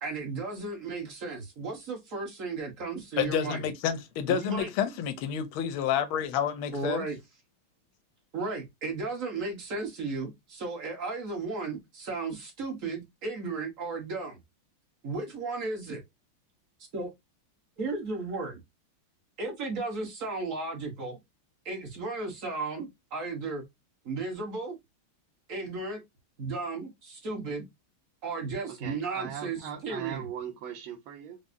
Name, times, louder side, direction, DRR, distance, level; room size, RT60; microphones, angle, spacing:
voice 1, 0.0-3.6 4.3-4.7 6.7-7.2 8.3-14.4 15.0-16.0 16.9-17.1 17.8-18.6 19.4-21.2 21.6-23.6 24.0-24.7 25.5-26.0 26.4-27.6 28.2-30.2, right 3 dB, 45° right, 1.2 m, -34 dB
voice 2, 3.2-7.0, left 9 dB, 80° left, 1.4 m, -29 dB
voice 3, 28.7-31.4, right 9 dB, 75° right, 1.6 m, -40 dB
4.9 x 2.0 x 2.6 m
omnidirectional pair, 2.2 m